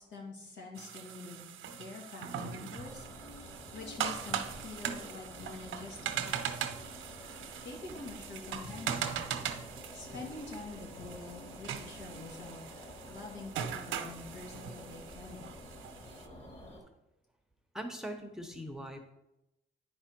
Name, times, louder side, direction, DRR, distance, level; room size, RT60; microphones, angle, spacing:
voice 1, 0.0-6.7 7.6-9.2 9.7-15.6, left 3 dB, 70° left, -2 dB, 2.6 m, -46 dB
sound 1, 0.8-16.3, right 9 dB, 80° right, 0.8 m, -40 dB
sound 2, 2.8-16.8, left 1 dB, 35° left, 3.4 m, -50 dB
voice 2, 17.7-19.1, equal, 5° right, 4 dB, 1.0 m, -41 dB
9.9 x 4.8 x 4.4 m, 0.90 s
cardioid pair, 90°, 20 cm